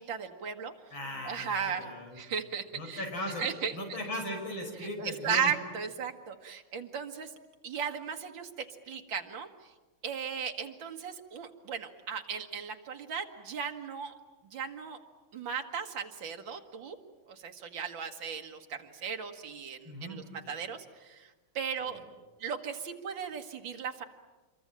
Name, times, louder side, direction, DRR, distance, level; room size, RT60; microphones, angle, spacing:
voice 1, 0.0-0.7 1.2-1.8 2.2-3.0 3.4-3.7 5.0-7.3 7.6-9.7 10.0-14.1 14.5-15.0 15.3-17.0 17.3-22.0 22.4-24.0, right 7 dB, 60° right, 4 dB, 2.4 m, -36 dB
voice 2, 0.9-2.2 2.7-3.4 3.7-5.5 19.8-20.2 21.8-22.0, left 1 dB, 60° left, 2 dB, 6.5 m, -38 dB
27.5 x 23.0 x 8.9 m, 1.2 s
omnidirectional pair, 2.4 m